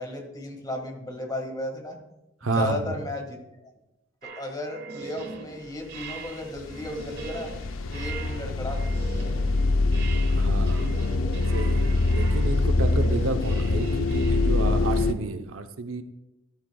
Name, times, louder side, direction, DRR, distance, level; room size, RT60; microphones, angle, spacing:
voice 1, 0.0-2.0 2.4-3.4 3.6-3.7 4.2-7.5 7.9-9.2, left 1 dB, 20° left, 2 dB, 1.9 m, -34 dB
voice 2, 2.4-2.9 10.4-11.0 11.5-16.0, right 3 dB, 80° right, 7 dB, 0.8 m, -30 dB
sound 1, 4.2-15.3, right 4 dB, 50° right, 1.5 m, -41 dB
sound 2, 6.1-6.3 6.5-15.1, left 2 dB, 70° left, 0.6 m, -24 dB
13.5 x 12.5 x 2.3 m, 0.95 s
head